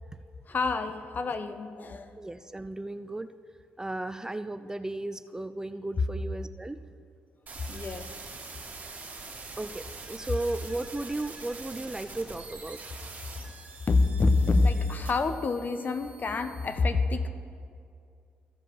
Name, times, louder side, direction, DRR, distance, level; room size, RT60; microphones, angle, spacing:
voice 1, 0.5-2.1 7.7-8.2 9.2-9.4 13.9-17.3, left 3 dB, 45° left, 9 dB, 0.8 m, -27 dB
voice 2, 2.2-3.3 3.8-6.8 9.6-12.8, right 2 dB, 15° right, 12 dB, 0.3 m, -35 dB
sound 1, 7.5-16.7, right 3 dB, 45° right, 2.5 m, -45 dB
14.5 x 5.1 x 5.2 m, 2.3 s
supercardioid pair, 65°, 4 cm